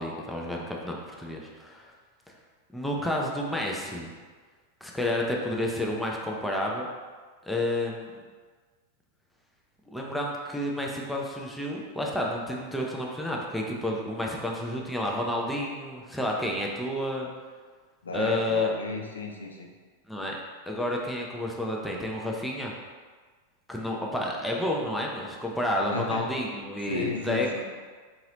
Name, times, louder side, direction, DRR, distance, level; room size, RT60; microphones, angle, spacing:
voice 1, 0.0-1.9 2.7-4.2 4.8-6.9 7.4-8.2 9.9-17.3 18.1-18.7 20.1-20.4 20.7-22.7 23.7-27.6, left 1 dB, ahead, -2 dB, 0.5 m, -30 dB
voice 2, 18.0-19.7 25.9-26.3 26.9-27.6, left 3 dB, 70° left, 0 dB, 0.4 m, -34 dB
3.8 x 2.9 x 2.8 m, 1.5 s
figure-of-eight pair, 90°, 0 cm